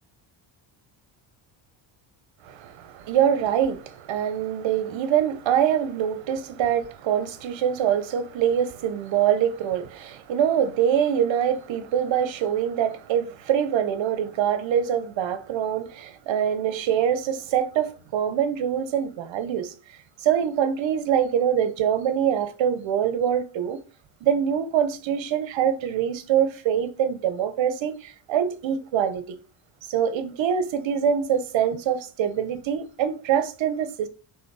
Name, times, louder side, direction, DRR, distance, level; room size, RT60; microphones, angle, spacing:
voice 1, 2.4-19.7 20.2-23.8 24.2-29.4 29.9-34.1, right 9 dB, 65° right, 1.0 m, -24 dB
6.3 x 3.5 x 4.7 m
cardioid pair, 110°, 50 cm